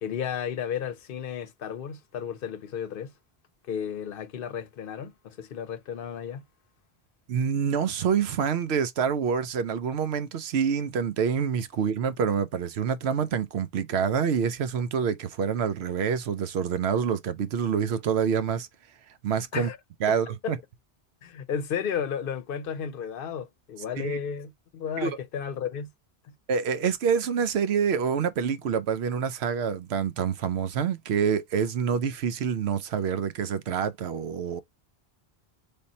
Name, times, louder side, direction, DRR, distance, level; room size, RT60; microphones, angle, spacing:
voice 1, 0.0-3.1 3.6-6.4 19.5-19.8 20.1-20.2 20.4-20.6 21.2-25.9 26.2-26.3, left 7 dB, 60° left, 0.8 m, -33 dB
voice 2, 7.3-18.7 19.2-19.7 20.0-20.6 24.0-24.2 25.0-25.1 26.5-34.6, right 7 dB, 80° right, 0.9 m, -27 dB
3.5 x 2.8 x 3.9 m
omnidirectional pair, 1.1 m